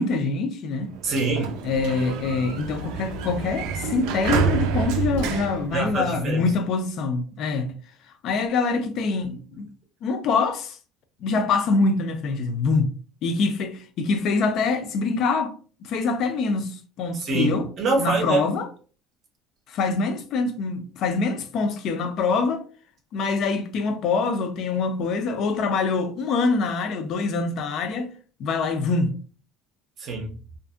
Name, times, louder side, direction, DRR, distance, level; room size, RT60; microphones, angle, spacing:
voice 1, 0.0-0.9 1.6-7.7 8.2-9.7 10.0-10.8 11.2-12.9 13.2-15.5 15.8-17.6 18.0-18.7 19.7-22.6 23.1-28.1 28.4-29.2, left 4 dB, 45° left, 0.4 m, -24 dB
Sliding door, 0.9-6.5, right 6 dB, 75° right, 0.4 m, -28 dB
voice 2, 1.0-1.6 5.7-6.5 17.1-18.4 30.0-30.3, right 3 dB, 35° right, 0.6 m, -25 dB
2.6 x 2.4 x 2.4 m
cardioid pair, 170°, 0 cm